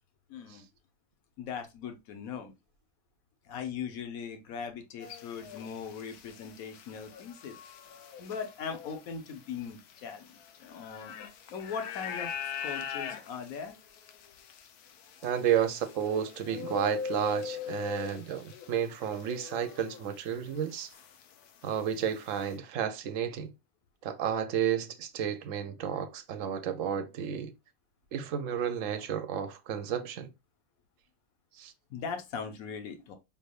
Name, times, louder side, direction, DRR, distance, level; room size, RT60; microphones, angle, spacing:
voice 1, 0.3-0.6 1.4-2.5 3.4-7.6 8.2-11.1 11.5-13.7 31.9-33.1, left 6 dB, 70° left, 1.3 m, -40 dB
sound 1, 5.0-20.3 20.6-22.5, left 7 dB, 90° left, 1.2 m, -42 dB
voice 2, 15.2-20.9 21.6-23.5 24.0-27.5 28.1-30.3 31.6-31.7, right 9 dB, 65° right, 1.0 m, -32 dB
5.3 x 3.3 x 2.4 m
omnidirectional pair, 1.6 m